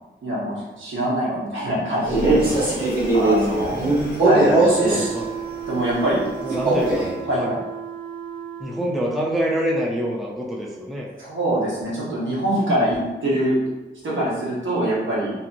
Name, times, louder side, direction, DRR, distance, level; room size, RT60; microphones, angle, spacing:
voice 1, 0.2-3.9 4.2-5.0 5.7-6.2 6.5-6.7 7.2-7.5 11.2-13.6 14.0-15.3, right 1 dB, 75° right, -7 dB, 1.0 m, -24 dB
Male speech man speaking, 2.0-5.1 6.5-7.1, right 2 dB, 50° right, 1.1 m, -20 dB
voice 2, 3.7-4.5 4.9-5.3 6.4-7.1 7.3-7.6 8.6-11.1 12.8-12.9, equal, ahead, -2 dB, 0.3 m, -27 dB
sound 1, 4.5-8.8, right 8 dB, 25° right, 0.8 m, -33 dB
2.7 x 2.6 x 2.6 m, 1.1 s
wide cardioid pair, 130°, 20 cm